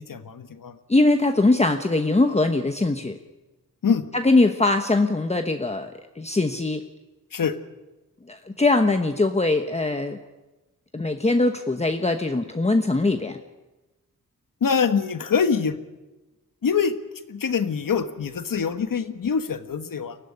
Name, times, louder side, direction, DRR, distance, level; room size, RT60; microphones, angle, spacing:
voice 1, 0.0-0.8 3.8-4.0 7.3-7.6 14.6-15.8 16.6-16.9 17.3-20.2, left 6 dB, 75° left, 9 dB, 1.4 m, -24 dB
voice 2, 0.9-3.2 4.2-6.8 8.3-10.2 10.9-13.4, left 2 dB, 20° left, 6 dB, 1.1 m, -21 dB
23.0 x 15.5 x 9.9 m, 1.1 s
wide cardioid pair, 110°, 33 cm